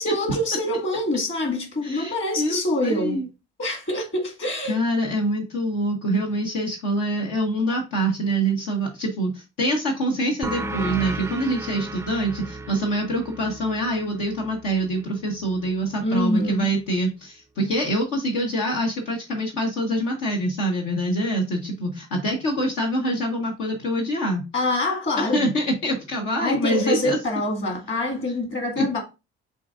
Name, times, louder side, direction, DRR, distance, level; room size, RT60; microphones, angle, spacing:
voice 1, 0.0-3.2 3.6-4.8 16.0-16.7 24.5-25.5 26.4-29.0, left 1 dB, 35° left, 1.7 m, -25 dB
voice 2, 1.8-3.3 4.7-24.4 25.2-27.2 28.8-28.9, right 1 dB, 70° left, 1.0 m, -25 dB
sound 1, 10.4-15.6, right 2 dB, 10° right, 0.3 m, -34 dB
6.7 x 2.7 x 2.4 m
hypercardioid pair, 50°, 34 cm